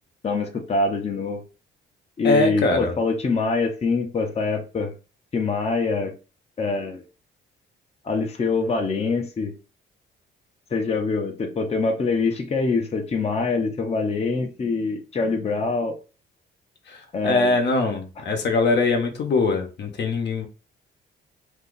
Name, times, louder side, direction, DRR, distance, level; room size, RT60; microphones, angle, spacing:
voice 1, 0.2-1.4 2.2-4.9 5.3-6.1 6.6-7.0 8.0-9.5 10.7-16.0 17.1-17.6, left 4 dB, 30° left, 0.8 m, -24 dB
voice 2, 2.2-3.0 16.9-17.0 17.2-20.5, left 3 dB, 60° left, 0.9 m, -22 dB
2.7 x 2.4 x 3.8 m
cardioid pair, 90°, 20 cm